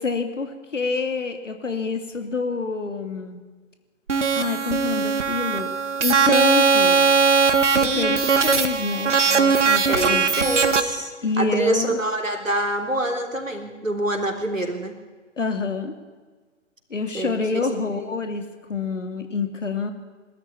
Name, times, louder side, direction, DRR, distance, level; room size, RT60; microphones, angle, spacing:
voice 1, 0.0-3.4 4.3-5.7 6.0-7.1 8.0-10.3 11.2-12.0 15.4-15.9 16.9-19.9, left 4 dB, 70° left, 7 dB, 2.9 m, -27 dB
sound 1, 4.1-10.8, right 5 dB, 65° right, 1.9 m, -19 dB
voice 2, 7.8-8.2 9.9-15.0 17.1-17.4, right 1 dB, 85° right, 4 dB, 3.6 m, -26 dB
21.5 x 13.5 x 9.7 m, 1.4 s
figure-of-eight pair, 130°, 38 cm